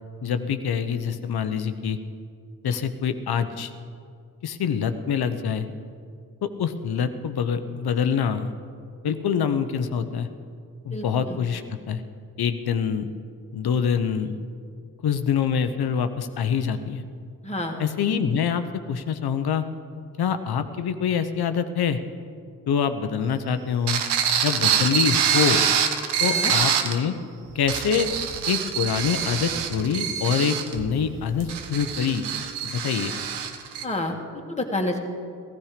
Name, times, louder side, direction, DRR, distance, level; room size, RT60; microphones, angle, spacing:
voice 1, 0.2-2.0 2.6-3.7 4.4-5.7 6.4-8.5 9.0-10.3 10.8-12.0 12.4-13.1 13.5-14.4 15.0-17.0 17.8-19.6 20.2-22.0 22.7-24.0 24.4-25.6 26.2-27.1 27.5-28.1 28.5-32.3 32.6-33.2, left 7 dB, 65° left, 9 dB, 1.0 m, -25 dB
voice 2, 10.9-11.4 17.4-17.8 26.2-26.5 33.8-34.2 34.5-35.0, left 2 dB, 15° left, 1 dB, 2.1 m, -29 dB
sound 1, 23.9-27.0 27.5-33.9, right 8 dB, 85° right, 0.9 m, -25 dB
14.5 x 14.5 x 5.1 m, 2.3 s
supercardioid pair, 45°, 40 cm